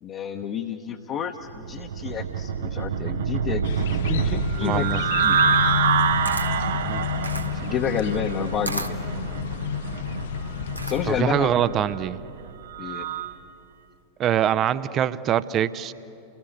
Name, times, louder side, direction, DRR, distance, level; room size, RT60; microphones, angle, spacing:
voice 1, 0.0-4.9 5.2-5.4 7.5-8.9 10.8-11.8 12.8-13.1, left 8 dB, 35° left, 3 dB, 1.1 m, -30 dB
sound 1, 1.5-13.4, right 7 dB, 60° right, 0.8 m, -27 dB
sound 2, 3.6-11.2, left 9 dB, 55° left, 0.6 m, -30 dB
voice 2, 4.6-5.0 6.9-7.1 11.1-12.2 14.2-15.9, right 10 dB, 30° right, 16 dB, 0.6 m, -23 dB
Camera, 5.9-11.3, right 1 dB, 85° right, 1.1 m, -36 dB
29.5 x 19.5 x 7.2 m, 2.6 s
figure-of-eight pair, 90°, 0 cm